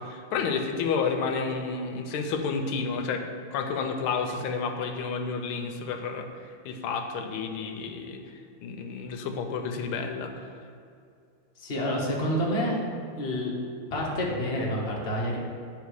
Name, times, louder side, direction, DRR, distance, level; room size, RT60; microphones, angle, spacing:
voice 1, 0.0-3.2 3.5-6.3 6.6-8.2 8.6-10.3, left 5 dB, 80° left, 5 dB, 1.5 m, -30 dB
voice 2, 11.6-12.8 13.1-13.5 13.9-15.4, equal, 40° left, -3 dB, 1.0 m, -28 dB
8.3 x 4.1 x 4.8 m, 2.4 s
omnidirectional pair, 2.4 m